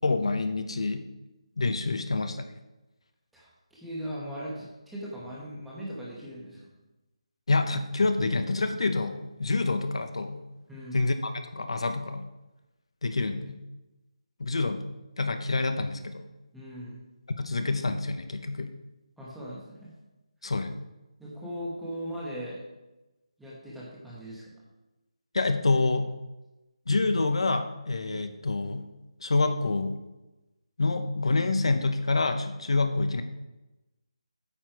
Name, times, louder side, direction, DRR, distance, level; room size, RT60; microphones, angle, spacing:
voice 1, 0.0-1.1 1.6-2.5 7.5-10.4 10.9-12.3 13.0-13.6 14.4-14.8 15.2-16.2 17.4-18.7 20.4-20.7 25.3-26.1 26.9-28.9 29.2-30.0 30.8-33.2, left 3 dB, 55° left, 8 dB, 0.7 m, -27 dB
voice 2, 3.3-6.6 10.7-11.1 16.5-17.0 19.2-19.9 21.2-22.6 23.4-24.4, equal, ahead, -7 dB, 1.0 m, -39 dB
8.9 x 6.4 x 4.5 m, 1.0 s
figure-of-eight pair, 175°, 3 cm